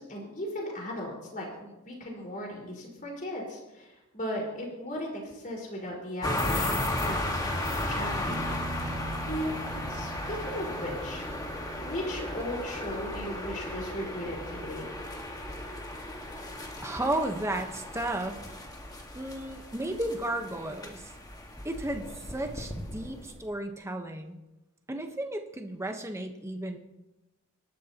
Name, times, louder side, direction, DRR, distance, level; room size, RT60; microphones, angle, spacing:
voice 1, 0.0-8.4 9.2-14.9, equal, 40° left, -1 dB, 4.8 m, -37 dB
sound 1, 6.2-23.5, left 1 dB, 20° left, 1.7 m, -35 dB
sound 2, 8.3-15.9 18.9-19.0, right 2 dB, 45° right, 0.6 m, -44 dB
voice 2, 16.8-18.4 19.1-21.1 21.6-24.4 24.9-26.8, right 1 dB, 15° right, 4 dB, 1.1 m, -33 dB
25.5 x 12.0 x 2.9 m, 1.0 s
head